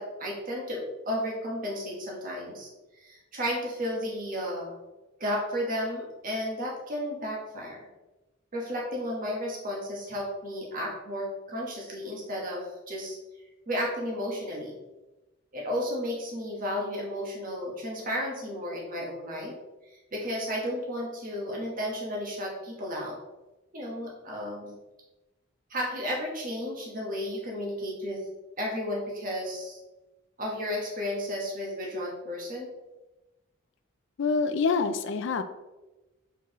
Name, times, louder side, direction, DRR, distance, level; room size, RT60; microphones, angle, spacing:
voice 1, 0.0-2.7 3.0-4.7 5.2-7.9 8.5-13.2 13.7-14.8 15.5-19.5 20.1-23.2 23.7-24.7 25.7-28.2 28.6-29.8 30.4-32.7, equal, 40° right, -2 dB, 1.3 m, -33 dB
voice 2, 34.2-35.4, left 4 dB, 60° left, 9 dB, 0.4 m, -26 dB
6.9 x 4.6 x 3.0 m, 1.1 s
head